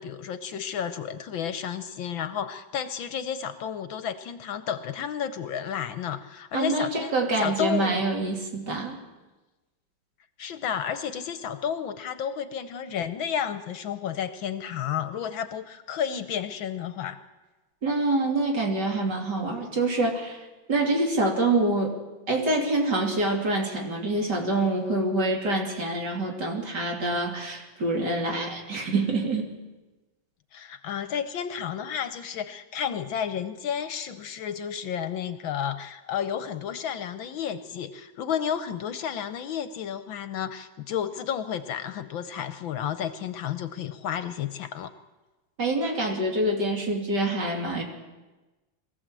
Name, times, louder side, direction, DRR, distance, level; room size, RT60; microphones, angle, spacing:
voice 1, 0.0-7.1 7.4-8.0 10.4-17.2 30.5-44.9, left 8 dB, 70° left, 11 dB, 1.5 m, -32 dB
voice 2, 6.5-9.0 17.8-21.9 22.3-29.5 45.6-47.8, right 2 dB, 50° right, 1 dB, 3.4 m, -26 dB
22.5 x 15.5 x 7.5 m, 1.1 s
omnidirectional pair, 2.4 m